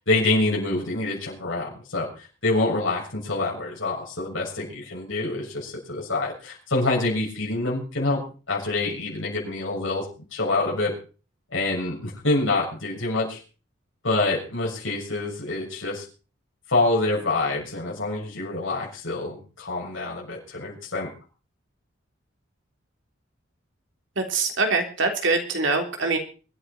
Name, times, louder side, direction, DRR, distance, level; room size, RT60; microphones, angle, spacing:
voice 1, 0.1-8.2 8.5-10.1 10.3-10.9 11.5-13.4 14.0-16.0 16.7-21.1, left 2 dB, 80° left, -2 dB, 6.7 m, -26 dB
voice 2, 24.2-26.2, right 3 dB, 70° right, 3 dB, 3.5 m, -24 dB
23.5 x 10.5 x 4.4 m, 0.37 s
head